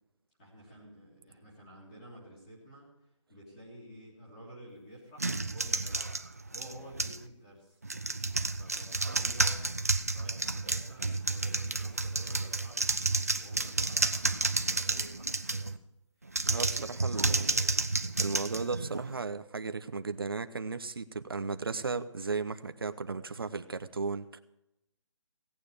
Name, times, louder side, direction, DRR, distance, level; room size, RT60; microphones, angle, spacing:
voice 1, 0.4-2.9 3.3-6.1 6.5-7.8 8.6-15.8 16.2-17.8, equal, 15° left, -5 dB, 3.0 m, -51 dB
sound 1, 5.2-7.3 7.8-15.8 16.3-19.2, right 3 dB, 30° right, 0.4 m, -31 dB
voice 2, 16.4-17.5 18.2-24.4, right 4 dB, 45° right, 10 dB, 0.8 m, -35 dB
17.0 x 9.1 x 4.9 m, 0.89 s
hypercardioid pair, 180°, 17 cm